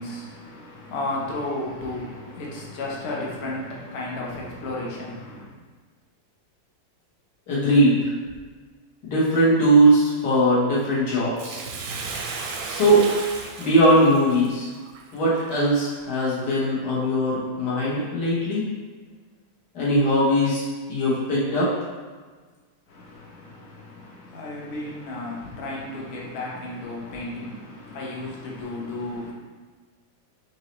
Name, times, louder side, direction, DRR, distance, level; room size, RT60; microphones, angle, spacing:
voice 1, 0.0-5.5 22.9-29.3, left 2 dB, 50° left, -4 dB, 0.9 m, -33 dB
voice 2, 7.5-8.1 9.0-11.6 12.7-13.1 13.6-14.7 15.1-18.6 19.7-21.7, right 1 dB, 70° left, -8 dB, 1.8 m, -20 dB
Bathtub (filling or washing), 11.4-15.9 16.4-16.5, right 4 dB, 70° right, 0.9 m, -35 dB
4.6 x 2.9 x 3.0 m, 1.4 s
omnidirectional pair, 1.9 m